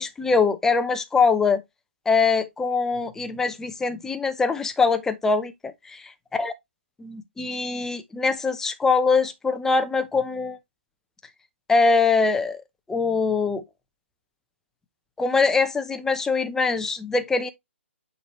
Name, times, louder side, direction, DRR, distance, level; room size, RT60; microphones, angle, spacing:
voice 1, 0.0-1.6 2.1-5.7 6.4-6.5 7.0-10.6 11.7-12.6 12.9-13.6 15.2-17.5, left 4 dB, 5° left, 0.8 m, -23 dB
9.0 x 4.1 x 3.1 m
figure-of-eight pair, 140°, 7 cm